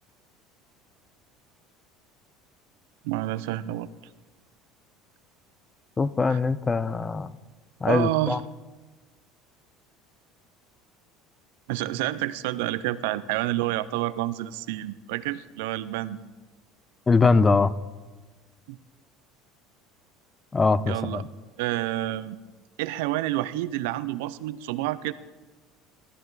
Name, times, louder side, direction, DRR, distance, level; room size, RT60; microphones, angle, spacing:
voice 1, 3.0-3.9 6.3-6.4 7.9-8.4 11.7-16.2 18.7-18.8 20.9-21.2 21.6-22.4 22.8-25.1, right 15 dB, 85° right, 15 dB, 0.5 m, -29 dB
voice 2, 6.0-7.3 7.8-8.4 17.1-17.7 20.5-21.2, left 4 dB, 15° left, 18 dB, 0.4 m, -22 dB
13.0 x 12.5 x 4.0 m, 1.2 s
cardioid pair, 140°, 0 cm